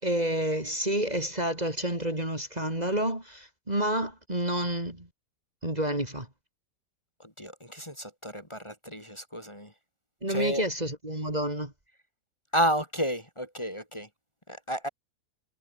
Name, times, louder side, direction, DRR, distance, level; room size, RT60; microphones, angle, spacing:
voice 1, 0.0-5.1 5.6-6.3 10.2-11.7, right 1 dB, 25° right, 4.5 m, -29 dB
voice 2, 7.2-9.7 10.3-10.6 12.5-14.1 14.5-14.9, equal, 15° left, 4.1 m, -31 dB
omnidirectional pair, 1.7 m